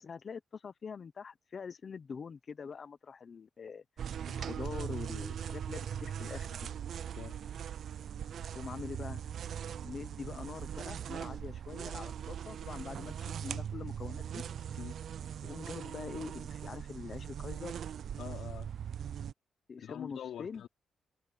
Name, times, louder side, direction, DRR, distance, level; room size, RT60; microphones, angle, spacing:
voice 1, 0.0-6.7 8.5-9.2 9.8-14.4 15.4-17.8 19.7-20.6, left 5 dB, 35° left, 0.9 m, -44 dB
sound 1, 4.0-19.3, right 9 dB, 55° right, 0.4 m, -40 dB
voice 2, 18.2-18.7 19.8-20.7, left 10 dB, 75° left, 4.6 m, -44 dB
wide cardioid pair, 165°, 0 cm